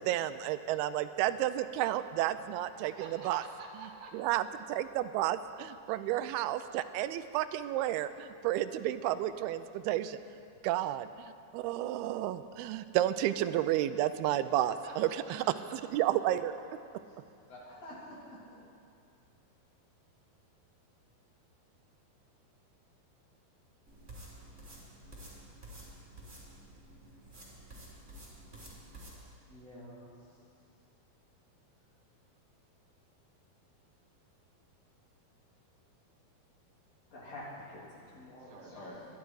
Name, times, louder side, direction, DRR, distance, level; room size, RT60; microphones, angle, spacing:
voice 1, 0.0-3.4 4.1-10.2 10.6-15.4 15.9-16.5, right 13 dB, 90° right, 12 dB, 2.5 m, -31 dB
voice 2, 2.7-4.2 14.3-15.8 38.4-38.8, right 4 dB, 70° right, 1 dB, 2.9 m, -50 dB
voice 3, 17.5-18.6 29.5-30.0 37.1-39.1, left 1 dB, 45° left, -7 dB, 4.3 m, -48 dB
sound 1, 23.9-29.2, right 1 dB, 15° right, 3.2 m, -51 dB
22.5 x 11.5 x 4.8 m, 2.4 s
omnidirectional pair, 4.4 m